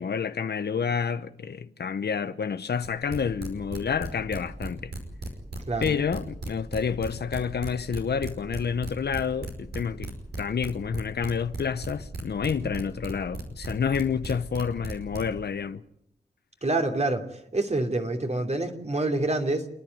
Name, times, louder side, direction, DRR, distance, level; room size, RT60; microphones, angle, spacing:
voice 1, 0.0-4.9 5.8-15.8, left 6 dB, 75° left, 0.9 m, -29 dB
sound 1, 2.8-15.5, right 3 dB, 75° right, 5.3 m, -35 dB
voice 2, 16.6-19.7, right 2 dB, 40° right, 3.0 m, -27 dB
28.0 x 10.5 x 9.5 m
cardioid pair, 45°, 17 cm